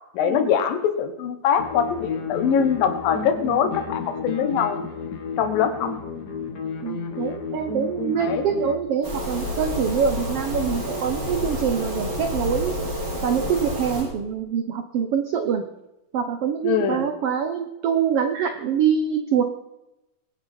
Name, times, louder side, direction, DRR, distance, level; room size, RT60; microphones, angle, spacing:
voice 1, 0.1-4.8 5.4-5.9 8.2-8.5 16.6-17.1, left 7 dB, 85° left, 9 dB, 3.0 m, -23 dB
sound 1, 1.6-8.8, left 5 dB, 65° left, 0.9 m, -32 dB
voice 2, 6.8-12.7 13.2-15.6 16.1-19.4, right 7 dB, 85° right, 7 dB, 1.3 m, -24 dB
sound 2, 9.0-14.0, left 1 dB, 35° right, 4.6 m, -29 dB
22.5 x 9.5 x 4.4 m, 0.93 s
omnidirectional pair, 3.9 m